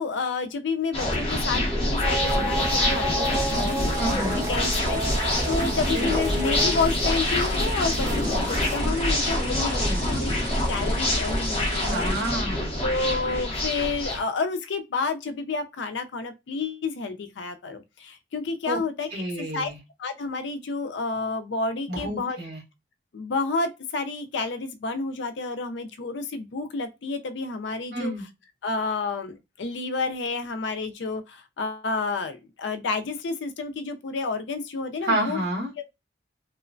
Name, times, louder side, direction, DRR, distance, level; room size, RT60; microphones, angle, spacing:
voice 1, 0.0-3.9 4.2-9.7 10.1-10.3 10.7-12.3 12.8-19.7 20.0-22.4 23.1-28.1 28.6-35.4 35.8-35.9, left 4 dB, 75° left, 0.4 m, -30 dB
sound 1, 0.9-14.2, left 1 dB, 30° left, 0.8 m, -26 dB
sound 2, 2.0-8.8, right 1 dB, 20° right, 0.3 m, -32 dB
sound 3, 3.3-12.3, right 3 dB, 45° right, 0.7 m, -42 dB
voice 2, 4.0-4.4 5.9-6.2 9.3-10.2 11.8-12.8 18.6-18.8 19.1-19.8 21.9-22.6 27.9-28.2 35.0-35.8, right 1 dB, 65° right, 1.4 m, -30 dB
3.0 x 2.0 x 2.5 m
head